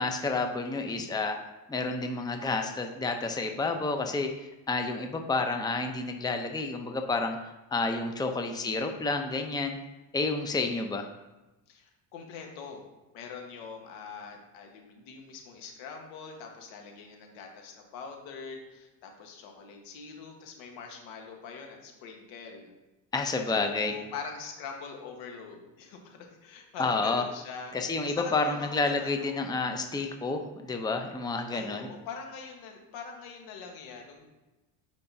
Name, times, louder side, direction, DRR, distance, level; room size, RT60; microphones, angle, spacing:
voice 1, 0.0-1.4 1.7-9.8 10.1-11.1 23.1-23.9 26.8-27.2 27.7-31.9, left 3 dB, 10° left, 5 dB, 0.7 m, -30 dB
voice 2, 11.7-12.8 13.1-22.7 23.5-29.5 31.5-34.2, left 5 dB, 75° left, 2 dB, 1.5 m, -43 dB
8.2 x 5.2 x 2.8 m, 1.1 s
supercardioid pair, 80°, 47 cm